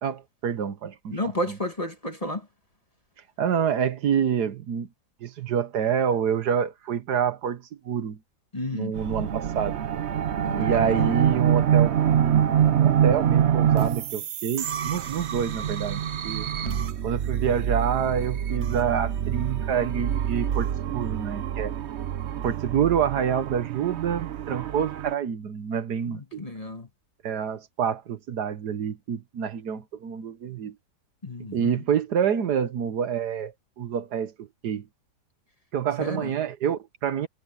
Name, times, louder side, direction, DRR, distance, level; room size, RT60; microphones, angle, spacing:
voice 1, 0.0-1.6 3.4-4.9 5.2-8.2 8.7-9.8 10.5-12.5 12.8-16.5 17.0-21.8 22.4-26.4 27.2-30.7 31.4-34.9 35.7-37.3, right 8 dB, 70° right, 1.6 m, -27 dB
voice 2, 1.1-2.4 8.5-8.9 10.4-11.1 16.6-16.9 26.1-26.9 31.2-31.8 36.0-36.3, left 1 dB, 20° left, 1.7 m, -32 dB
sound 1, 9.0-25.1, right 9 dB, 55° right, 0.8 m, -26 dB
omnidirectional pair, 1.8 m